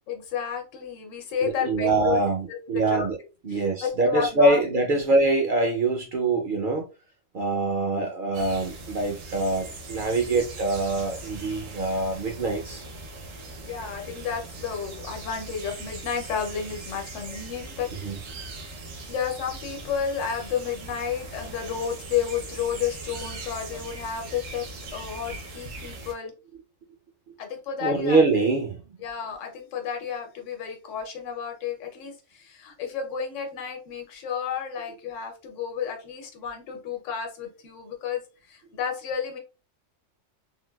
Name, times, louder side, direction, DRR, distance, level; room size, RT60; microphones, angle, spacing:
voice 1, 0.1-2.2 2.5-3.1 3.5-4.6 4.9-5.0 13.6-17.9 19.1-24.7 24.9-26.3 27.4-28.2 29.0-38.2 38.5-39.4, left 7 dB, 70° left, 1.1 m, -31 dB
voice 2, 1.4-3.2 3.4-6.8 7.3-12.8 18.0-18.2 27.8-28.7, right 2 dB, 60° right, 0.6 m, -24 dB
sound 1, 8.3-26.1, right 2 dB, 75° right, 1.2 m, -40 dB
3.8 x 2.2 x 2.2 m
omnidirectional pair, 1.3 m